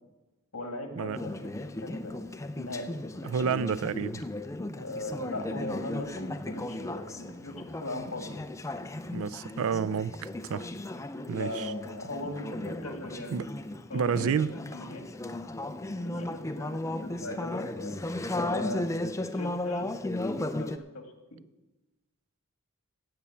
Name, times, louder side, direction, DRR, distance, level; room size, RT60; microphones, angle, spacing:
voice 1, 0.5-1.5 1.8-2.1 2.6-2.9 4.8-8.3 11.4-13.3 13.9-15.1 15.9-18.0 18.4-18.8 19.3-19.9 20.2-21.0 21.3-21.4, left 1 dB, 65° left, 2.0 m, -39 dB
Conversation / Chatter, 1.1-20.8, left 1 dB, 15° left, 0.5 m, -36 dB
voice 2, 3.2-4.2 9.1-10.7 11.3-11.7 13.3-13.5 13.9-14.5, right 6 dB, 65° right, 0.4 m, -30 dB
15.5 x 5.7 x 8.3 m
head